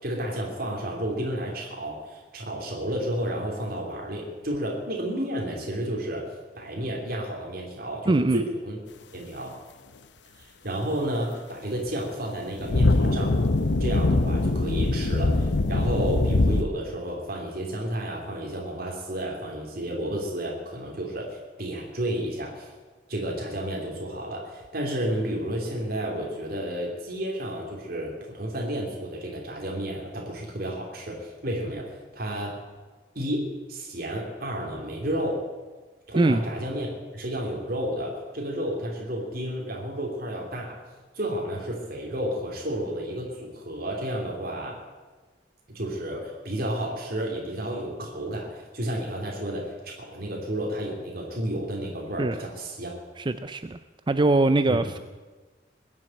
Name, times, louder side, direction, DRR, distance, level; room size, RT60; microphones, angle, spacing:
voice 1, 0.0-6.2 6.5-8.8 9.1-9.6 10.4-13.4 13.8-22.7 23.1-32.5 33.1-35.4 36.1-36.9 37.1-40.8 41.1-44.7 45.7-52.9 54.7-54.8, right 1 dB, 55° right, -1 dB, 3.0 m, -31 dB
voice 2, 8.1-8.4 36.2-36.4 52.2-52.4 53.2-53.8 54.1-55.0, right 2 dB, 25° right, 11 dB, 0.4 m, -22 dB
sound 1, 12.2-16.6, left 2 dB, 70° left, 0.9 m, -22 dB
21.5 x 7.5 x 8.9 m, 1.3 s
head